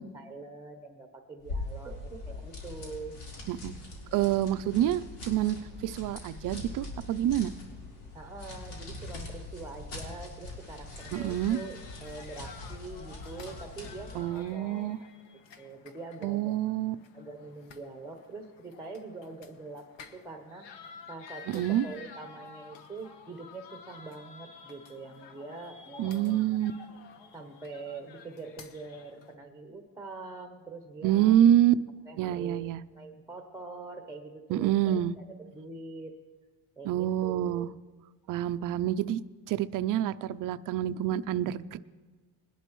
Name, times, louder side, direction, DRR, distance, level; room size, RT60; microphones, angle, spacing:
voice 1, 0.0-3.2 8.1-14.9 15.6-16.6 17.1-20.7 21.1-26.4 27.3-31.4 32.1-32.6 32.9-35.0 35.5-36.1 36.8-37.7, right 3 dB, 5° right, 4 dB, 0.8 m, -44 dB
sound 1, 1.4-14.3, left 2 dB, 90° left, 4.0 m, -42 dB
voice 2, 4.1-5.6 5.8-7.5 11.1-11.6 14.1-15.0 16.2-17.0 21.5-21.8 26.0-26.7 31.0-31.8 32.2-32.8 34.5-35.1 36.8-37.7 38.3-39.2 39.5-41.8, right 11 dB, 45° right, 14 dB, 0.4 m, -27 dB
sound 2, 11.0-29.4, left 6 dB, 60° left, 1.2 m, -51 dB
21.0 x 11.0 x 3.1 m, 1.4 s
cardioid pair, 135°, 49 cm